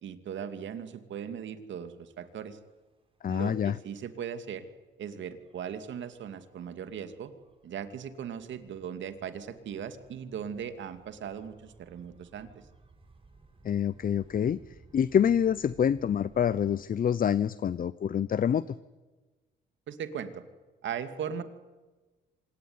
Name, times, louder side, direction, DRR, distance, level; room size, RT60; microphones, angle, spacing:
voice 1, 0.0-2.6 3.3-4.7 5.0-7.3 7.6-12.6 19.9-20.4 20.8-21.4, right 8 dB, 70° right, 10 dB, 2.5 m, -38 dB
Gull seagull / Waves surf / Siren, 2.1-16.8, right 3 dB, 25° right, 5.9 m, -59 dB
voice 2, 3.2-3.8 13.6-14.6 14.9-18.6, left 8 dB, 45° left, 18 dB, 0.7 m, -26 dB
26.0 x 19.5 x 9.7 m, 1.2 s
cardioid pair, 90°, 20 cm